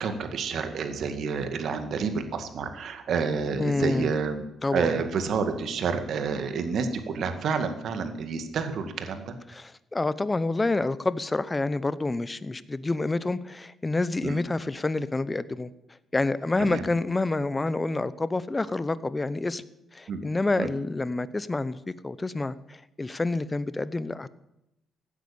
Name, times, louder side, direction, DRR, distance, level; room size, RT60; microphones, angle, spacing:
voice 1, 0.0-4.4 4.7-9.3 14.2-14.4 16.6-16.8 20.1-20.2 20.6-20.7, right 5 dB, 65° right, 7 dB, 2.1 m, -29 dB
voice 2, 3.6-4.1 4.6-4.9 9.5-15.7 16.1-19.6 19.9-24.3, left 2 dB, 20° left, 16 dB, 0.9 m, -28 dB
16.0 x 9.7 x 8.7 m, 0.87 s
cardioid pair, 90°, 0 cm